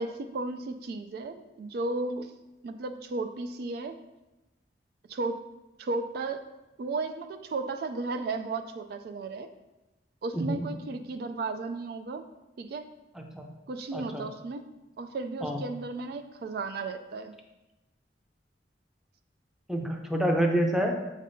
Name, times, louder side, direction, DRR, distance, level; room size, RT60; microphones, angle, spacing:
voice 1, 0.0-2.3 2.6-3.9 5.1-5.4 5.8-6.4 6.8-9.5 10.2-12.2 12.6-12.8 13.7-14.6 15.0-17.3, right 3 dB, 60° right, 8 dB, 0.3 m, -34 dB
voice 2, 10.3-10.7 13.1-13.5 13.9-14.3 15.4-15.6 19.7-21.0, equal, 5° right, 2 dB, 0.6 m, -28 dB
7.4 x 5.2 x 2.7 m, 1.0 s
head